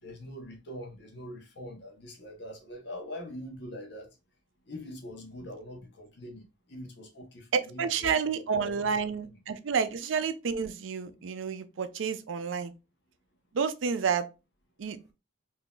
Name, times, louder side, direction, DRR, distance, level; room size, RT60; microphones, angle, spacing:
voice 1, 0.0-4.1 4.7-8.2 8.5-9.0 11.1-11.3 12.6-12.7, left 1 dB, 60° left, 0.9 m, -43 dB
voice 2, 7.5-12.7 13.5-14.3 14.8-15.0, right 6 dB, 75° right, 0.4 m, -30 dB
3.8 x 2.7 x 2.3 m
head